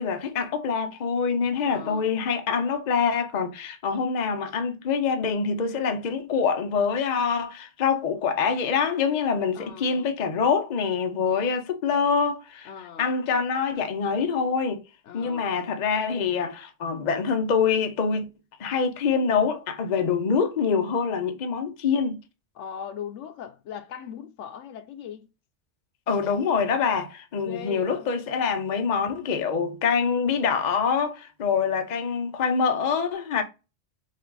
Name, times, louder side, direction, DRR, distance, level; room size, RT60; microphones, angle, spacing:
voice 1, 0.0-12.7 13.0-14.8 15.1-18.3 18.6-22.2 26.1-33.4, left 5 dB, 45° left, 0.7 m, -25 dB
voice 2, 1.7-2.1 9.5-10.1 12.6-13.1 15.0-15.5 22.6-25.3 27.4-28.1, left 8 dB, 80° left, 1.0 m, -39 dB
5.2 x 2.4 x 4.0 m
omnidirectional pair, 1.2 m